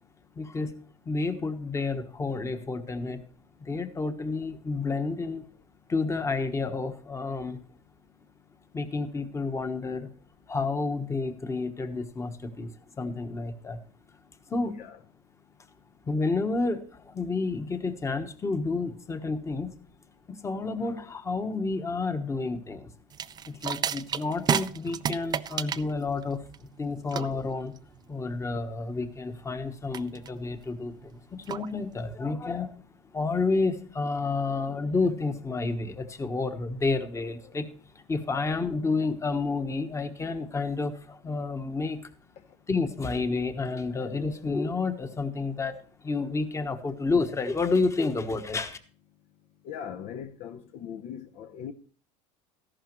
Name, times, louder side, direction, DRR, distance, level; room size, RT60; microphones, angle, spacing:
voice 1, 0.3-0.7 1.0-3.2 3.6-5.4 5.9-7.6 8.7-10.1 10.5-13.8 14.5-14.8 16.1-19.7 20.3-22.9 23.5-26.4 26.8-27.7 28.1-32.8 33.1-37.7 37.9-42.0 42.7-45.8 46.0-48.8, left 3 dB, 20° left, 1.2 m, -30 dB
sound 1, 23.1-32.2, right 8 dB, 25° right, 0.4 m, -34 dB
voice 2, 49.6-51.7, left 8 dB, 50° left, 0.7 m, -39 dB
14.0 x 11.5 x 3.1 m
supercardioid pair, 115°, 16 cm